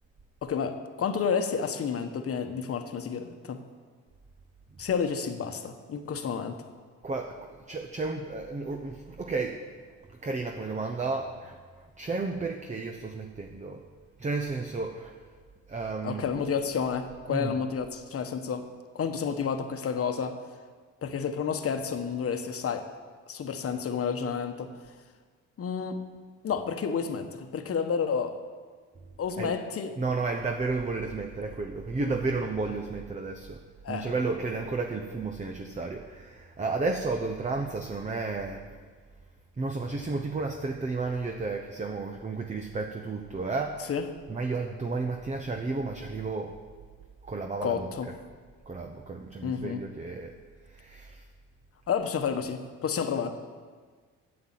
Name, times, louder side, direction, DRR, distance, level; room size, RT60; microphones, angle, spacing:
voice 1, 0.4-3.6 4.8-6.6 16.0-18.7 18.9-20.3 21.0-22.8 23.3-24.7 25.6-26.0 26.4-28.4 29.2-29.9 33.8-34.1 43.9-44.1 47.6-48.1 49.4-49.8 51.9-53.3, left 6 dB, 50° left, 7 dB, 1.1 m, -30 dB
voice 2, 7.0-9.6 10.1-11.6 12.0-13.8 14.2-15.1 15.7-16.3 17.3-17.6 29.4-29.6 30.0-33.6 33.9-38.7 39.6-43.9 44.3-46.6 47.2-47.9 48.7-50.3 50.7-51.2, right 3 dB, 25° right, 4 dB, 0.9 m, -32 dB
9.4 x 7.8 x 7.5 m, 1.5 s
cardioid pair, 90°, 30 cm